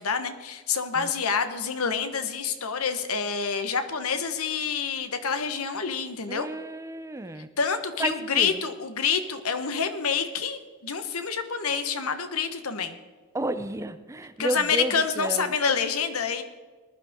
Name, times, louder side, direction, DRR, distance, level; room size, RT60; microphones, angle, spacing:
voice 1, 0.0-6.5 7.6-13.0 14.4-16.4, left 6 dB, 80° left, 9 dB, 1.2 m, -27 dB
voice 2, 6.3-7.5 8.0-8.5 13.3-15.5, right 1 dB, 15° right, 11 dB, 0.6 m, -31 dB
19.5 x 11.5 x 3.7 m, 1.5 s
head